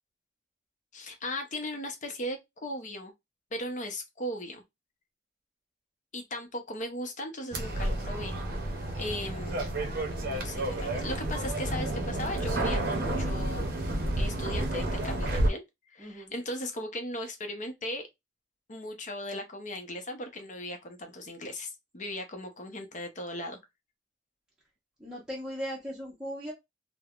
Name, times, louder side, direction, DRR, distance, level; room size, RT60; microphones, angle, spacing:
voice 1, 0.9-3.1 3.5-4.6 6.1-8.4 9.0-9.6 10.2-13.7 14.2-15.6 15.9-18.1 18.7-23.6, left 1 dB, 45° left, 0.6 m, -37 dB
sound 1, 7.5-15.5, right 1 dB, 55° right, 0.6 m, -30 dB
voice 2, 16.0-16.3 25.0-26.5, equal, 5° right, 0.7 m, -38 dB
3.1 x 2.1 x 2.4 m
head